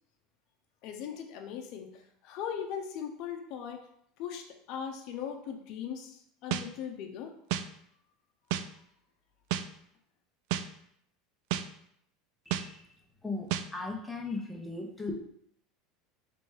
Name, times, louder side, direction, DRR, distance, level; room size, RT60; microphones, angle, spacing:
voice 1, 0.8-1.9 2.2-3.8 4.2-7.3, left 8 dB, 60° left, 3 dB, 0.7 m, -39 dB
sound 1, 6.5-6.6 7.5-7.6 8.5-8.6 9.5-9.6 10.5-10.6 11.5-11.6 12.5-12.6 13.5-13.6, right 11 dB, 65° right, 0.3 m, -30 dB
voice 2, 12.5-12.9 13.2-15.1, left 3 dB, 5° left, -1 dB, 0.9 m, -37 dB
3.4 x 3.0 x 4.6 m, 0.70 s
supercardioid pair, 115°, 0 cm